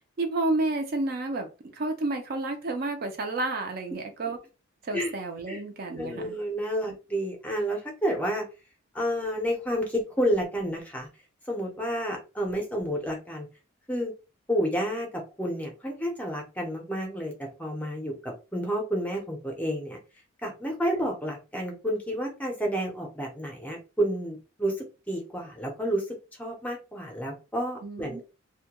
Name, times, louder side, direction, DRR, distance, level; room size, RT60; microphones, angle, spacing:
voice 1, 0.2-4.4 4.8-6.4 6.8-7.0 27.8-28.2, right 2 dB, 45° right, 4 dB, 0.4 m, -30 dB
voice 2, 6.0-8.4 8.9-11.1 11.5-13.5 13.9-14.1 14.5-15.1 15.4-20.0 20.4-28.2, equal, 5° left, 1 dB, 0.5 m, -30 dB
2.2 x 2.1 x 2.8 m, 0.31 s
head